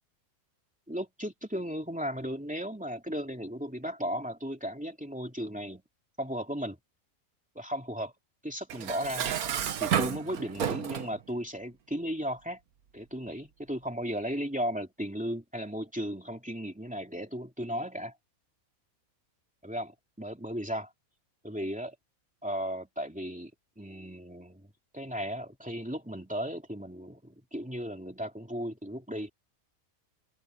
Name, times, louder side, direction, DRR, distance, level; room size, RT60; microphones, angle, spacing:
voice 1, 0.9-5.8 6.2-6.8 7.5-8.1 8.4-9.3 9.8-12.6 12.9-18.2 19.6-20.9 21.4-21.9 22.4-23.5 23.8-29.3, equal, 5° right, 2.8 m, -35 dB
Dishes pots and pans, 8.7-11.2, right 9 dB, 85° right, 1.5 m, -31 dB
omnidirectional pair, 1.5 m